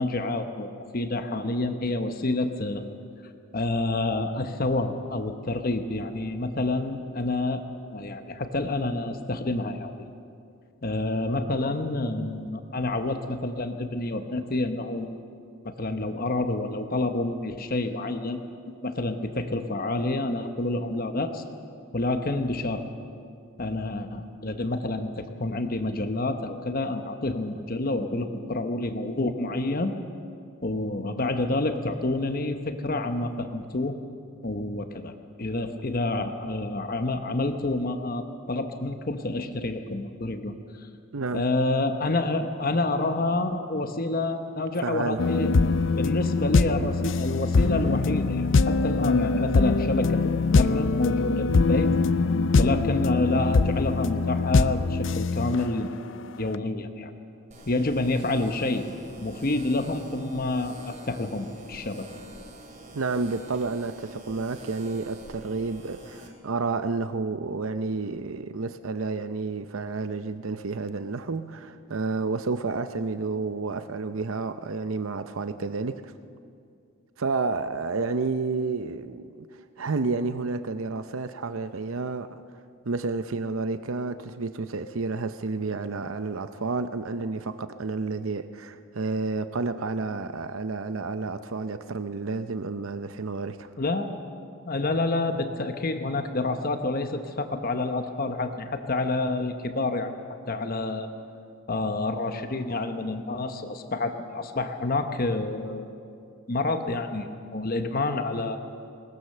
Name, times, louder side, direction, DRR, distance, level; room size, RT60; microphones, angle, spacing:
voice 1, 0.0-2.8 3.5-7.6 7.9-10.1 10.8-15.2 15.6-18.4 18.8-21.4 21.9-22.8 23.6-29.9 30.6-33.9 34.4-35.1 35.4-40.9 41.3-45.5 46.0-51.9 52.6-55.9 56.4-57.1 57.7-58.9 59.2-62.1 93.8-94.1 94.7-100.1 100.5-101.1 101.7-105.9 106.5-108.6, left 2 dB, 45° left, 1.0 m, -28 dB
voice 2, 41.1-41.4 44.8-45.2 62.9-76.1 77.2-82.4 82.8-93.7, right 3 dB, 70° right, 0.7 m, -30 dB
sound 1, 45.2-55.9 56.5-56.6, left 4 dB, 60° left, 0.5 m, -23 dB
sound 2, 57.5-66.3, right 1 dB, 35° right, 2.6 m, -46 dB
21.5 x 19.5 x 6.7 m
head